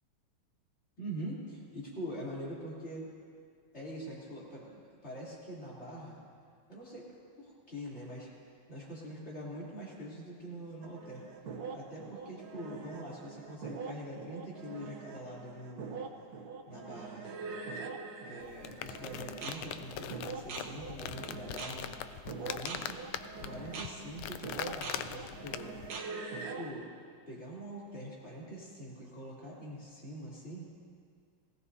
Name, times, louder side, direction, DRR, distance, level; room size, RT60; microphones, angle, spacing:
voice 1, 1.0-3.1 3.7-6.2 6.7-7.1 7.4-8.3 8.7-11.2 11.7-16.0 16.7-17.3 18.3-23.0 23.4-25.8 26.6-26.9 27.3-30.7, equal, 30° left, -6 dB, 3.5 m, -44 dB
sound 1, 10.8-26.7, right 4 dB, 55° right, 1.4 m, -43 dB
sound 2, 18.4-25.9, left 10 dB, 90° left, 1.5 m, -42 dB
20.0 x 16.0 x 2.8 m, 2.2 s
omnidirectional pair, 2.3 m